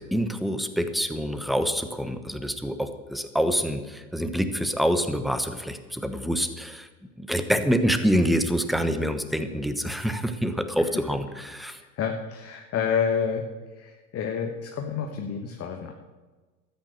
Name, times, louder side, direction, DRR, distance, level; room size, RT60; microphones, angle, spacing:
voice 1, 0.0-6.9 7.2-11.8, equal, ahead, 9 dB, 1.1 m, -26 dB
voice 2, 11.7-13.4 13.7-15.9, left 6 dB, 35° left, 3 dB, 1.5 m, -29 dB
13.0 x 9.7 x 6.7 m, 1.3 s
hypercardioid pair, 85°, 43 cm